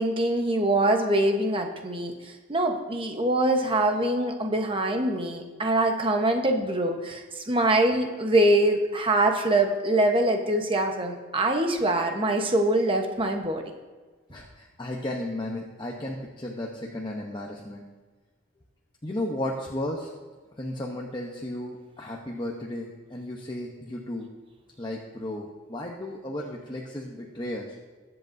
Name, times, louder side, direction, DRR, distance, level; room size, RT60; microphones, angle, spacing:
voice 1, 0.0-13.6, right 1 dB, 25° right, 4 dB, 1.0 m, -24 dB
voice 2, 14.3-17.8 19.0-20.1 20.6-24.3 24.8-27.8, left 1 dB, 20° left, -1 dB, 0.9 m, -34 dB
21.0 x 7.8 x 2.7 m, 1.3 s
head